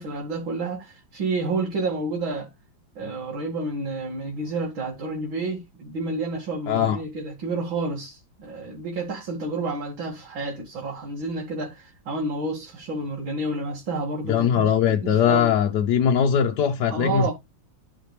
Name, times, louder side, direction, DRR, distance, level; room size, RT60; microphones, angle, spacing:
voice 1, 0.0-2.5 3.0-15.5 16.9-17.3, right 2 dB, 80° right, 2.7 m, -30 dB
voice 2, 6.7-7.0 14.3-17.3, left 8 dB, 65° left, 1.2 m, -21 dB
12.5 x 5.1 x 3.2 m
omnidirectional pair, 2.1 m